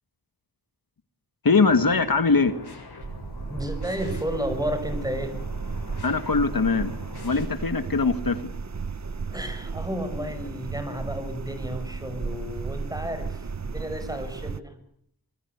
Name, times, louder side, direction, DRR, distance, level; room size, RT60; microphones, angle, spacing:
voice 1, 1.4-2.6 6.0-6.9 7.2-8.4, left 4 dB, 65° left, 10 dB, 2.0 m, -21 dB
sound 1, 1.6-7.5, left 3 dB, 85° left, 7.6 m, -43 dB
sound 2, 3.0-14.6, right 5 dB, 45° right, 1.1 m, -34 dB
voice 2, 3.4-5.3 9.3-14.8, equal, 10° right, 9 dB, 6.2 m, -32 dB
26.5 x 20.5 x 8.2 m, 0.68 s
wide cardioid pair, 80°, 38 cm